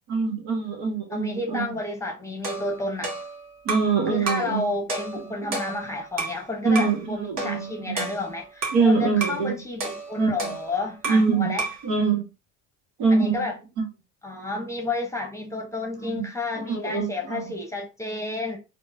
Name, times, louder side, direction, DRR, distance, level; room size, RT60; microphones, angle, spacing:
voice 1, 0.1-1.7 3.6-4.7 5.5-5.6 6.6-8.1 8.7-9.6 10.2-10.5 11.0-11.5 11.8-12.2 13.0-13.5 13.8-13.9 16.0-16.3 16.6-17.4, right 4 dB, 70° right, 1.2 m, -24 dB
voice 2, 1.1-3.2 4.1-11.6 13.1-13.6 14.2-18.6, left 2 dB, 10° left, 0.9 m, -31 dB
sound 1, 2.4-4.0 4.3-4.5 4.9-6.4 6.7-7.0 7.4-8.9 9.2-9.4 9.8-11.3 11.6-11.9, right 3 dB, 45° right, 1.4 m, -32 dB
3.6 x 2.2 x 2.6 m
supercardioid pair, 85°, 37 cm